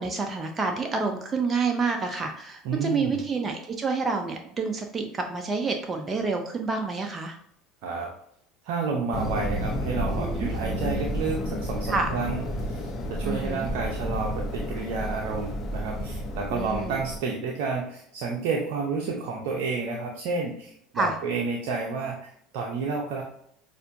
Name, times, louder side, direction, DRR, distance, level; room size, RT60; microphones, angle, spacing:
voice 1, 0.0-7.4 10.1-10.5 11.9-12.1 13.2-13.7 16.5-17.0 20.9-21.1, right 4 dB, 25° right, 3 dB, 0.6 m, -28 dB
voice 2, 2.6-3.2 7.8-8.1 8.6-23.2, right 4 dB, 60° right, -1 dB, 0.7 m, -30 dB
sound 1, 9.1-17.2, equal, 35° left, 0.9 m, -31 dB
6.5 x 2.6 x 2.6 m, 0.70 s
hypercardioid pair, 70°, 0 cm